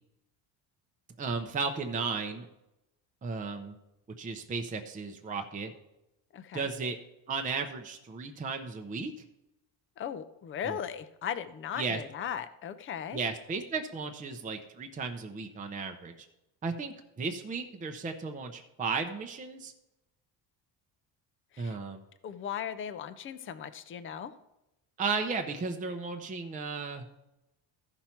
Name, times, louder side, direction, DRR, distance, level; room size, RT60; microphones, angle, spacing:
voice 1, 1.2-2.5 3.2-3.8 4.2-5.7 6.5-7.0 7.3-9.1 10.6-10.8 11.8-12.0 13.1-16.1 16.6-19.7 21.6-22.0 25.0-27.0, right 4 dB, 20° right, 5 dB, 0.6 m, -34 dB
voice 2, 6.3-6.7 10.0-13.2 21.5-21.8 22.2-24.3, left 8 dB, 30° left, 12 dB, 0.5 m, -37 dB
14.0 x 5.7 x 4.4 m, 0.92 s
cardioid pair, 150°, 45 cm